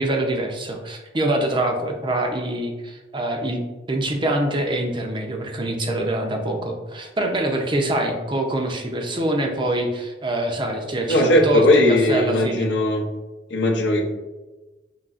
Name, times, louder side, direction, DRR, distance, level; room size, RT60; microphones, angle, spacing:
voice 1, 0.0-3.6 3.9-12.7, right 1 dB, 30° right, 3 dB, 0.5 m, -25 dB
voice 2, 11.1-13.1 13.5-14.0, left 1 dB, 80° left, 1 dB, 0.6 m, -18 dB
5.4 x 2.9 x 2.4 m, 1.1 s
head